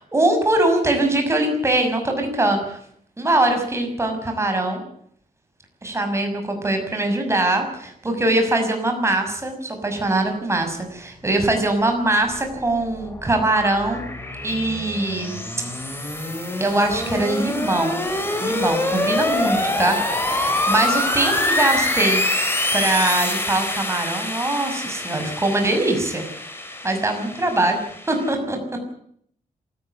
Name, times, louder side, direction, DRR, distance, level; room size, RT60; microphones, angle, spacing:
voice 1, 0.1-2.8 3.2-4.8 5.8-14.0 14.4-15.4 16.6-18.0 18.4-20.0 20.3-22.2 22.7-26.3 26.8-27.8 28.1-28.6, right 2 dB, 20° right, 4 dB, 6.2 m, -22 dB
sound 1, 12.3-28.3, left 1 dB, 15° left, 4.1 m, -25 dB
27.0 x 14.0 x 8.1 m, 0.65 s
wide cardioid pair, 160°, 15 cm